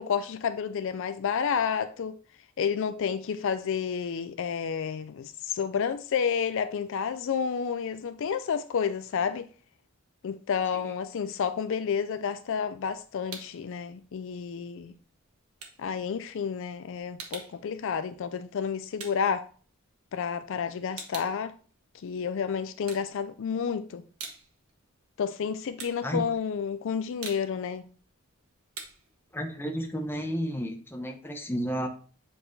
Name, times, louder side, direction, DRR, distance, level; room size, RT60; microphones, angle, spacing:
voice 1, 0.0-2.2 2.6-9.5 10.2-15.0 15.8-19.5 20.1-21.5 21.9-24.0 25.2-27.9, left 6 dB, 60° left, 0.4 m, -30 dB
sound 1, 13.3-13.7 14.0-20.2 20.6-22.3 22.7-23.6 23.9-30.6, right 5 dB, 80° right, 1.4 m, -46 dB
voice 2, 29.3-31.9, equal, 10° left, 0.8 m, -32 dB
7.8 x 4.3 x 3.2 m
head